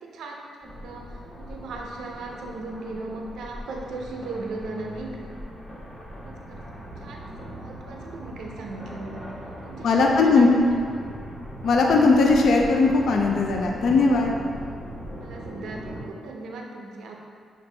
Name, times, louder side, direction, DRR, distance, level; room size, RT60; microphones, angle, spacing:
voice 1, 0.0-5.3 6.2-6.6 7.0-9.3 9.6-10.5 15.1-17.2, right 3 dB, 85° right, 0 dB, 0.4 m, -37 dB
sound 1, 0.6-16.0, equal, 15° left, 1.1 m, -39 dB
voice 2, 9.8-10.5 11.6-14.3, left 3 dB, 65° left, 0 dB, 0.4 m, -19 dB
5.9 x 2.5 x 3.2 m, 2.2 s
cardioid pair, 140°, 0 cm